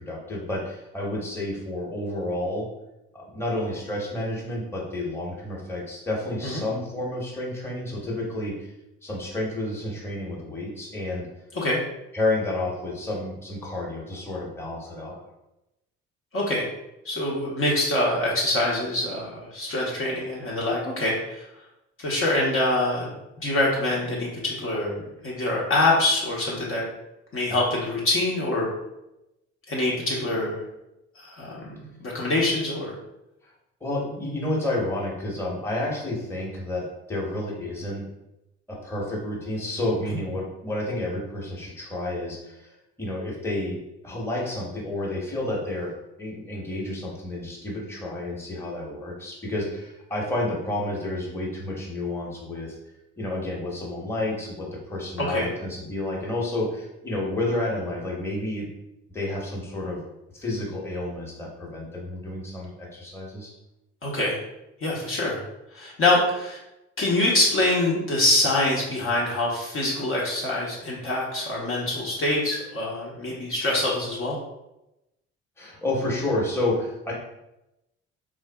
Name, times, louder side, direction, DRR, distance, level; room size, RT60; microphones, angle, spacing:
voice 1, 0.0-2.7 3.1-8.5 9.0-11.3 12.1-15.2 33.8-38.1 38.7-43.8 44.0-52.8 53.2-58.7 59.1-60.0 60.3-63.5 75.6-77.1, left 1 dB, 5° left, -4 dB, 1.0 m, -30 dB
voice 2, 16.3-16.7 17.0-21.5 22.0-23.1 23.4-26.8 27.3-28.7 29.7-30.6 31.2-33.0 55.2-55.5 64.0-64.4 64.8-65.4 65.7-66.6 67.0-74.4, left 2 dB, 40° left, -4 dB, 0.8 m, -25 dB
3.5 x 2.5 x 2.2 m, 0.91 s
figure-of-eight pair, 45°, 34 cm